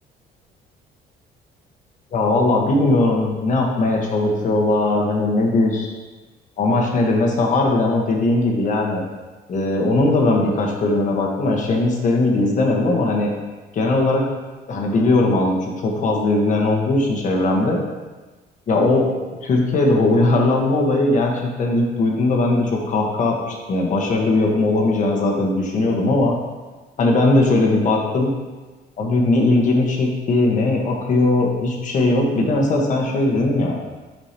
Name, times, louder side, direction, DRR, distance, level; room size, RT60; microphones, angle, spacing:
voice 1, 2.1-5.9 6.6-9.0 9.5-13.3 13.7-14.2 14.7-17.8 18.7-19.1 19.4-26.3 27.0-28.3 29.0-33.8, left 2 dB, 50° left, 0 dB, 1.5 m, -19 dB
8.5 x 6.0 x 3.0 m, 1.2 s
cardioid pair, 110°, 17 cm